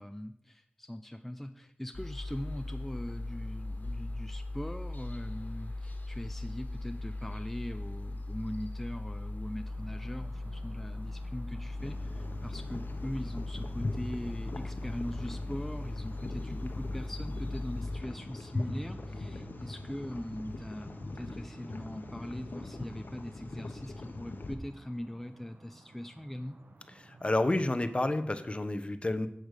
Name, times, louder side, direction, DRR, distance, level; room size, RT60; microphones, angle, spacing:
voice 1, 0.0-26.6, left 1 dB, 5° left, 8 dB, 0.6 m, -41 dB
sound 1, 1.9-18.0, left 2 dB, 60° left, 1.9 m, -39 dB
sound 2, 9.6-28.4, right 2 dB, 75° right, 1.2 m, -55 dB
sound 3, 11.8-24.5, left 2 dB, 75° left, 1.0 m, -41 dB
voice 2, 27.0-29.3, left 2 dB, 35° left, 11 dB, 0.9 m, -30 dB
8.7 x 8.2 x 6.5 m, 0.74 s
wide cardioid pair, 75°, 3 cm